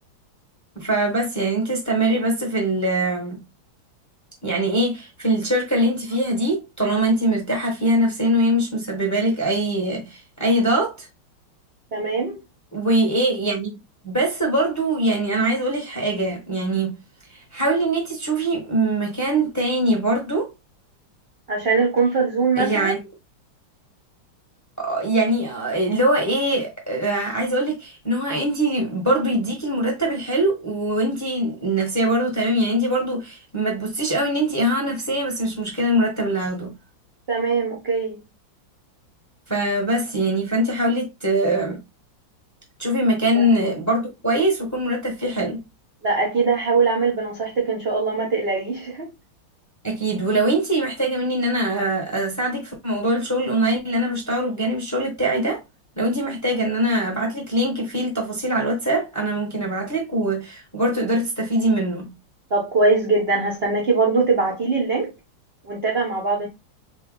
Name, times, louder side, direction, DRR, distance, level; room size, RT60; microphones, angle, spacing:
voice 1, 0.7-3.4 4.4-11.1 12.7-13.7 14.0-17.0 17.5-20.5 22.6-23.0 24.8-36.7 39.5-41.8 42.8-45.6 49.8-55.6 56.0-62.1, right 1 dB, 15° left, 0.8 m, -22 dB
voice 2, 11.9-12.4 21.5-22.9 37.3-38.2 43.3-43.4 46.0-49.1 62.5-65.1 65.6-66.5, right 4 dB, 60° right, 0.6 m, -21 dB
4.0 x 2.3 x 3.9 m
omnidirectional pair, 2.3 m